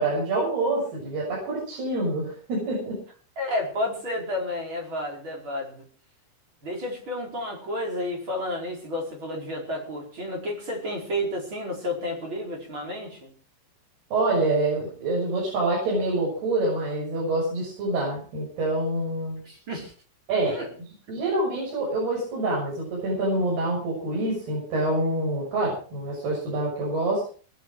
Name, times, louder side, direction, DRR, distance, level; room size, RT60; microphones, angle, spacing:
voice 1, 0.0-3.0 14.1-19.4 20.3-20.6 21.1-27.3, right 2 dB, 55° right, -4 dB, 8.2 m, -26 dB
voice 2, 3.4-5.8 6.6-13.3 19.4-19.9 20.5-20.7, left 1 dB, 25° right, 0 dB, 5.0 m, -31 dB
20.0 x 11.5 x 4.8 m, 0.41 s
omnidirectional pair, 5.5 m